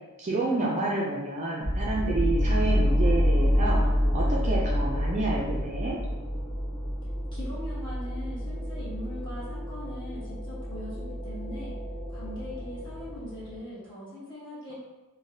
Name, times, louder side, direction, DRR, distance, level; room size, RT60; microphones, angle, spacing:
voice 1, 0.2-3.8 4.1-6.0, right 2 dB, 30° right, -4 dB, 0.4 m, -29 dB
sound 1, 1.6-13.6, equal, 35° left, 0.8 m, -28 dB
voice 2, 7.3-11.8 12.1-14.7, left 1 dB, 20° left, -10 dB, 1.2 m, -41 dB
3.2 x 2.1 x 2.7 m, 1.1 s
head